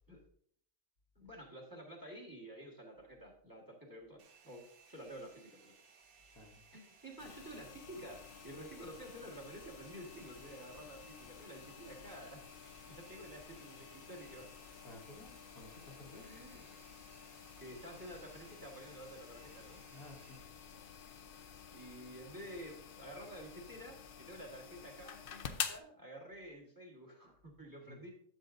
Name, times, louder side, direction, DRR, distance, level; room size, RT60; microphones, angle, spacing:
voice 1, 1.1-5.7 6.7-12.4 12.9-14.5 16.1-16.6 17.6-19.8 21.7-28.1, right 1 dB, 15° right, -1 dB, 1.6 m, -51 dB
Domestic sounds home sounds, 4.2-20.4, right 6 dB, 80° right, 1.3 m, -64 dB
sound 1, 7.2-25.8, left 7 dB, 55° left, 0.7 m, -50 dB
voice 2, 14.8-16.3 19.8-20.4 27.9-28.0, left 2 dB, 85° left, 0 dB, 2.1 m, -54 dB
11.5 x 7.1 x 2.6 m, 0.63 s
omnidirectional pair, 1.5 m